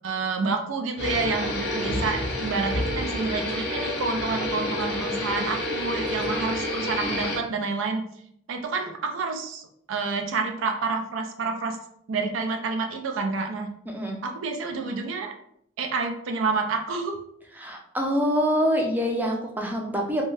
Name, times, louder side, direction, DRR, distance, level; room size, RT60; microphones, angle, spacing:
voice 1, 0.0-8.0 8.5-11.8 12.1-13.7 14.2-15.3 15.8-17.2, right 4 dB, 80° right, 4 dB, 0.4 m, -29 dB
sound 1, 1.0-7.4, left 1 dB, 55° left, 0.6 m, -29 dB
voice 2, 13.9-14.2 17.6-20.2, equal, 10° right, 0 dB, 0.4 m, -25 dB
2.7 x 2.2 x 3.1 m, 0.71 s
head